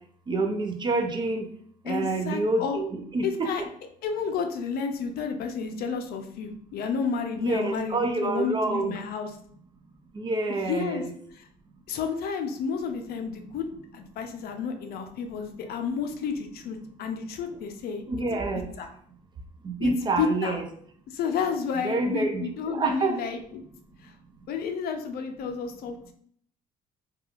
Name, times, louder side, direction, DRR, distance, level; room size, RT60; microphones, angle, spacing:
voice 1, 0.3-1.5 1.9-3.7 7.4-8.9 10.2-11.1 18.1-18.6 19.6-20.6 21.8-23.2, right 3 dB, 25° right, 4 dB, 0.4 m, -27 dB
voice 2, 1.8-2.8 3.2-3.6 4.0-9.3 10.5-11.0 11.3-11.5 11.9-13.7 13.9-18.0 18.8-18.9 19.8-20.6 21.1-23.6 24.0-24.1 24.5-26.1, left 5 dB, 65° left, 5 dB, 0.5 m, -31 dB
2.9 x 2.3 x 2.4 m, 0.62 s
cardioid pair, 110°, 17 cm